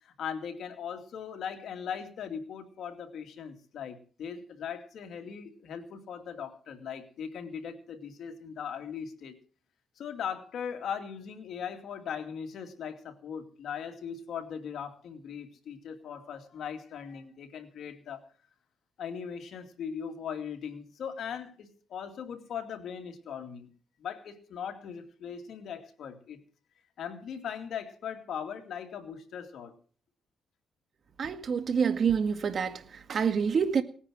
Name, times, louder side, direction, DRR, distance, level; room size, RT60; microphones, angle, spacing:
voice 1, 0.0-9.4 10.0-18.2 19.0-23.7 24.0-26.4 27.0-29.7, left 7 dB, 70° left, 2.4 m, -39 dB
voice 2, 31.2-33.8, right 6 dB, 50° right, 1.8 m, -27 dB
19.0 x 9.8 x 6.2 m
cardioid pair, 105°, 0 cm